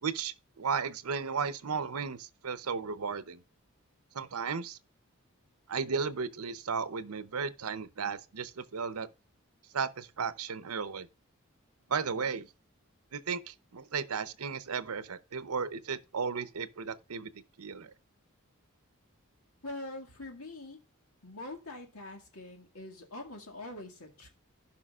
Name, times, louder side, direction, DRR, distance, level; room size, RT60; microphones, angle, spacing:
voice 1, 0.0-3.4 4.1-4.8 5.7-9.1 9.7-11.1 11.9-12.5 13.1-17.3 17.6-17.9, right 5 dB, 85° right, 0.7 m, -35 dB
voice 2, 19.6-20.8 21.2-24.3, left 2 dB, 75° left, 2.1 m, -44 dB
15.5 x 5.6 x 2.4 m
head